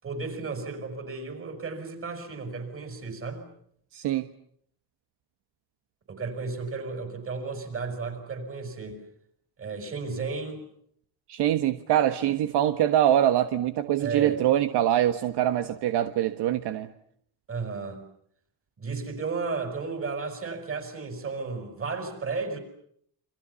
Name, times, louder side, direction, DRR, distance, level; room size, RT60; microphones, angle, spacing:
voice 1, 0.0-3.4 6.1-9.0 9.6-10.6 14.0-14.4 17.5-18.0 18.8-22.6, right 4 dB, 30° right, 8 dB, 6.4 m, -33 dB
voice 2, 3.9-4.3 11.3-16.9, right 12 dB, 70° right, 9 dB, 1.5 m, -24 dB
29.0 x 26.5 x 7.0 m, 0.67 s
cardioid pair, 150°, 42 cm